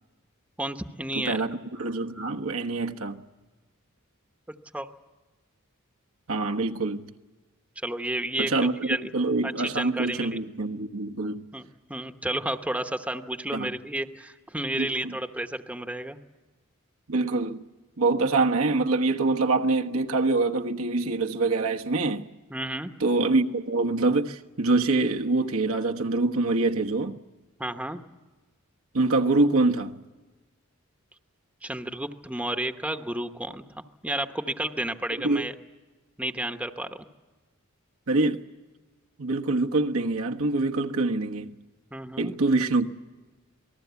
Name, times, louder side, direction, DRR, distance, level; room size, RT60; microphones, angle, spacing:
voice 1, 0.6-1.4 4.7-4.9 7.8-9.1 9.4-10.4 11.5-16.2 22.5-22.9 27.6-28.0 31.6-33.6 34.0-35.5 36.2-37.0 41.9-42.3, right 1 dB, 5° right, 1.0 m, -31 dB
voice 2, 1.1-3.2 6.3-7.1 8.4-11.4 13.5-13.7 14.8-15.1 17.1-17.6 18.0-22.2 23.0-27.2 28.9-30.0 35.2-35.5 38.1-38.4 39.2-41.5 42.2-42.9, right 3 dB, 75° right, 1.3 m, -25 dB
27.5 x 19.5 x 8.2 m
head